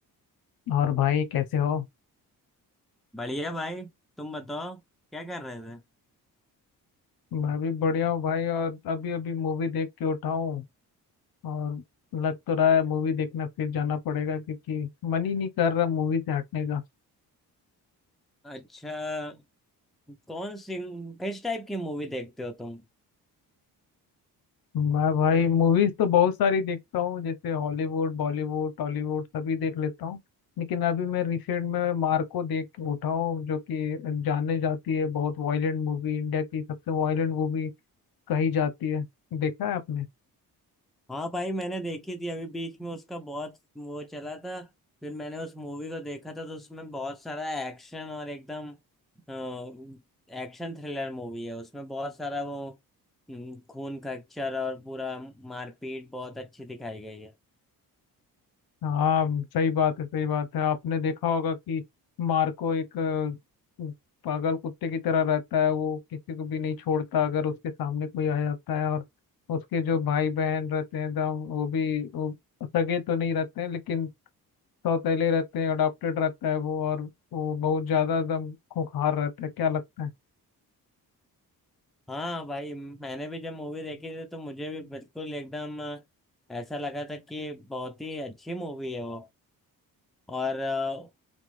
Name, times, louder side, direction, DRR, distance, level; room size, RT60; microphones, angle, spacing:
voice 1, 0.7-1.8 7.3-10.6 11.4-11.8 12.1-16.8 24.7-30.2 30.6-37.7 38.3-39.0 39.3-40.1 58.8-61.8 62.2-63.4 63.8-63.9 64.2-69.0 69.5-72.3 72.7-74.1 74.8-80.1, left 7 dB, 65° left, 0.7 m, -27 dB
voice 2, 3.1-3.9 4.2-4.8 5.1-5.8 18.4-19.4 20.1-22.8 41.1-44.7 45.0-48.8 49.3-50.0 50.3-52.8 53.3-57.3 82.1-86.0 86.5-89.3 90.3-91.1, left 1 dB, ahead, 0.5 m, -35 dB
2.9 x 2.1 x 3.1 m
cardioid pair, 90°, 38 cm